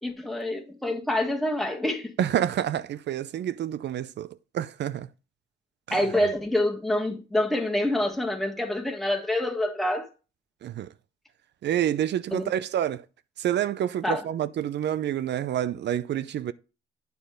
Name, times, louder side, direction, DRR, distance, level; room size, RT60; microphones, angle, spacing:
voice 1, 0.0-2.1 5.9-10.1 12.3-12.5 14.0-14.2, left 1 dB, ahead, 1.7 m, -26 dB
voice 2, 2.2-4.3 4.5-5.1 5.9-6.0 10.6-10.9 11.6-13.0 13.4-16.5, right 10 dB, 60° right, 0.6 m, -28 dB
9.5 x 4.2 x 5.0 m
cardioid pair, 90°, 20 cm